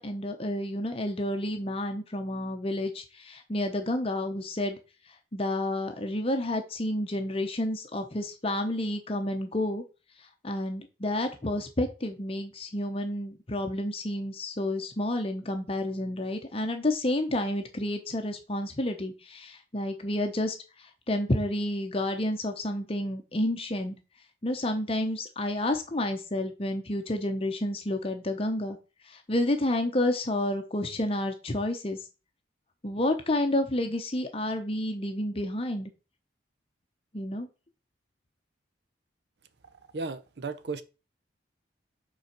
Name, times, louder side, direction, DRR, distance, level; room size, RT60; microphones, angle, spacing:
voice 1, 0.0-4.8 5.3-9.8 10.4-20.6 21.1-24.0 24.4-28.8 29.1-32.0 32.8-35.9 37.1-37.5, left 1 dB, 30° left, 0.7 m, -30 dB
voice 2, 39.9-40.8, right 3 dB, 60° right, 0.7 m, -34 dB
5.7 x 4.0 x 5.8 m
head